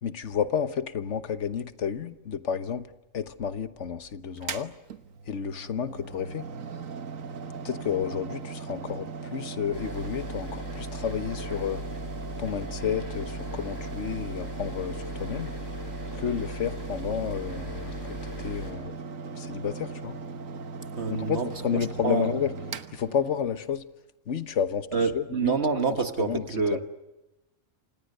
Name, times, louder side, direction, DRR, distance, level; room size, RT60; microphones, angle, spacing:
voice 1, 0.0-2.9 3.1-4.7 5.3-6.5 7.6-11.8 12.4-15.6 16.2-18.9 19.3-20.2 21.1-22.5 22.9-23.8 24.3-25.5 26.2-26.8, left 7 dB, 65° left, 1.4 m, -31 dB
Mechanical fan, 4.4-23.8, right 5 dB, 85° right, 1.5 m, -38 dB
sound 1, 9.7-18.7, left 2 dB, 15° left, 5.8 m, -39 dB
voice 2, 21.0-21.5 22.0-22.3 24.9-26.8, right 4 dB, 55° right, 1.7 m, -26 dB
29.0 x 26.5 x 6.6 m
omnidirectional pair, 1.3 m